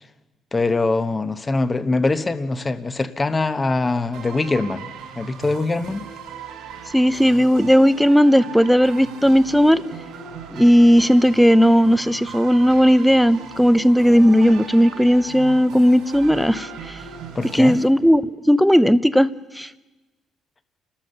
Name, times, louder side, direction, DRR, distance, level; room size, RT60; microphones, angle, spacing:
voice 1, 0.5-4.9 5.2-6.0 17.3-17.8, left 3 dB, 20° left, 11 dB, 1.1 m, -23 dB
sound 1, 4.1-17.8, right 6 dB, 85° right, 4.3 m, -38 dB
voice 2, 6.9-9.8 10.5-17.0 17.5-19.3 19.6-19.7, equal, ahead, 15 dB, 0.7 m, -16 dB
30.0 x 13.0 x 6.7 m, 1.1 s
cardioid pair, 115°, 0 cm